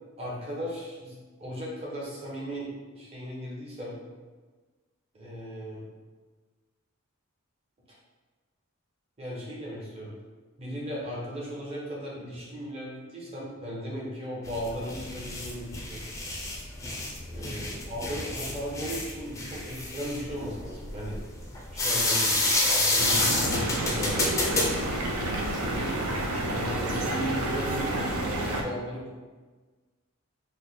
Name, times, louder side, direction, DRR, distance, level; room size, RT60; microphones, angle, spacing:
voice 1, 0.2-4.0 5.1-5.8 7.9-8.0 9.2-10.1 10.6-16.0 17.3-21.2 21.7-26.0 26.5-29.2, equal, 30° right, -5 dB, 0.8 m, -37 dB
sound 1, 14.4-25.8, left 2 dB, 15° left, 0.4 m, -29 dB
sound 2, 23.0-28.6, right 1 dB, 85° right, 0.5 m, -30 dB
3.2 x 2.1 x 3.9 m, 1.4 s
head